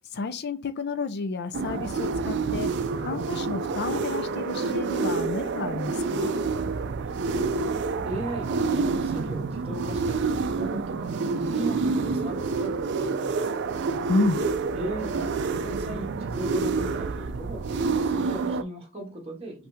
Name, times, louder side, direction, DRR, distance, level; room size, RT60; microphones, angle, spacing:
voice 1, 0.1-2.7 3.0-6.3 14.1-14.4, left 3 dB, 50° left, 0.5 m, -30 dB
sound 1, 1.5-18.6, right 4 dB, 55° right, 0.4 m, -28 dB
voice 2, 7.0-13.6 14.7-19.7, right 1 dB, 30° right, 1.7 m, -38 dB
5.5 x 2.7 x 3.5 m
head